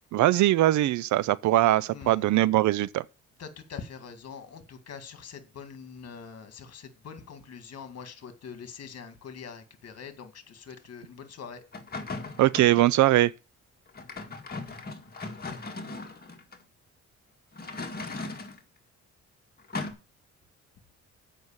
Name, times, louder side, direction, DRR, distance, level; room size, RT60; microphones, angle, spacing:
voice 1, 0.1-3.0 12.4-13.3, right 15 dB, 75° right, 0.5 m, -21 dB
voice 2, 1.9-2.3 3.4-11.6, left 6 dB, 55° left, 1.9 m, -44 dB
sound 1, 11.7-12.9 13.9-16.6 17.5-18.6 19.7-19.9, left 3 dB, 30° left, 2.0 m, -38 dB
7.9 x 5.4 x 7.3 m
cardioid pair, 90°, 30 cm